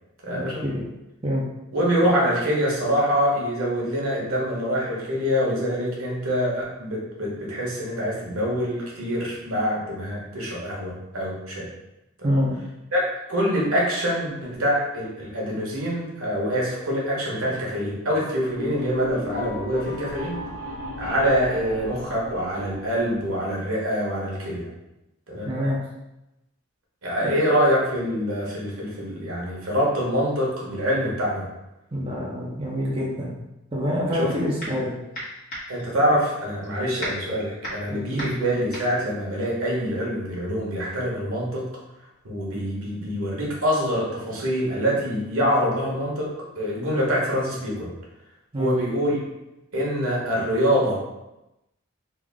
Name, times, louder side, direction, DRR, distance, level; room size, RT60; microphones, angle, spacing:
voice 1, 0.2-0.6 1.7-11.7 12.3-12.4 12.9-13.0 13.3-20.4 21.0-24.7 25.3-25.6 27.0-31.5 34.1-34.3 35.7-41.6 42.2-46.3 46.6-47.9 48.6-49.2 49.7-51.0, equal, 80° right, -4 dB, 1.1 m, -25 dB
voice 2, 12.2-12.6 25.4-25.8 27.2-27.3 31.9-33.3 33.7-34.9 37.9-38.3 48.5-48.8, equal, 25° right, -4 dB, 0.5 m, -26 dB
sound 1, 18.5-23.5, left 2 dB, 60° left, 1.1 m, -37 dB
sound 2, 34.1-34.9 35.1-40.1, equal, 40° left, 1.3 m, -35 dB
3.4 x 2.4 x 3.5 m, 0.94 s
head